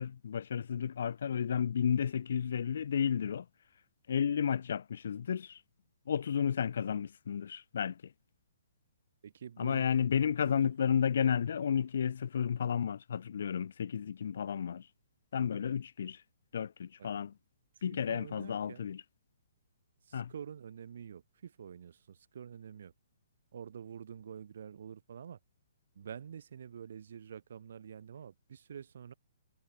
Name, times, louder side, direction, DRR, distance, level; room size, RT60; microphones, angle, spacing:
voice 1, 0.0-3.5 4.1-5.6 6.1-8.0 9.6-14.9 15.3-16.2 16.5-17.3 17.8-19.0 20.1-20.3, left 7 dB, 65° left, 0.7 m, -32 dB
voice 2, 9.2-9.9 10.4-10.5 17.0-17.1 18.1-18.9 20.1-22.9 23.5-25.4 25.9-29.1, right 8 dB, 65° right, 1.3 m, -47 dB
hypercardioid pair, 130°, 0 cm